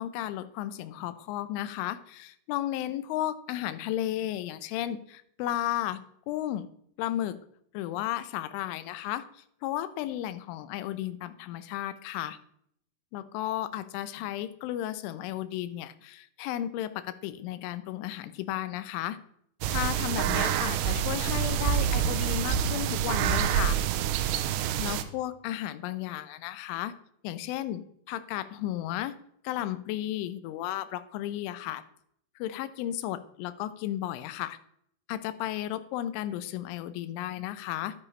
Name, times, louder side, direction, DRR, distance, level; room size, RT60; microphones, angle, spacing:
voice 1, 0.0-6.0 6.3-6.7 7.0-7.4 7.7-12.4 13.1-19.2 19.7-23.8 24.8-26.9 27.2-29.1 29.4-31.8 32.4-34.6 35.1-37.9, left 13 dB, 90° left, 13 dB, 3.1 m, -34 dB
sound 1, 19.6-25.0, right 9 dB, 85° right, 3.1 m, -27 dB
11.0 x 9.6 x 3.2 m, 0.70 s
omnidirectional pair, 5.4 m